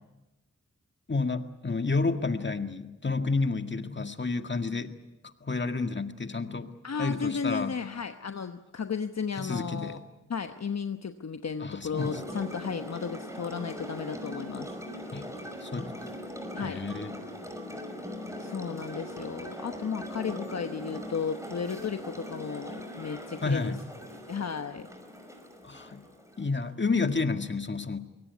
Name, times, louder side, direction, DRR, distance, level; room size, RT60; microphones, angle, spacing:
voice 1, 1.1-4.9 5.2-6.7 7.0-7.8 9.4-10.0 11.6-12.2 15.1-15.3 15.6-16.0 16.6-17.2 23.4-23.8 25.6-26.0 26.4-28.0, left 3 dB, 35° left, 7 dB, 1.8 m, -30 dB
voice 2, 6.8-10.0 10.3-14.7 16.5-16.8 18.4-23.7 24.1-24.9, left 6 dB, 60° left, 8 dB, 1.1 m, -34 dB
sound 1, 12.0-26.7, equal, 10° right, 5.1 m, -41 dB
23.5 x 18.0 x 9.6 m, 1.0 s
cardioid pair, 55°, 30 cm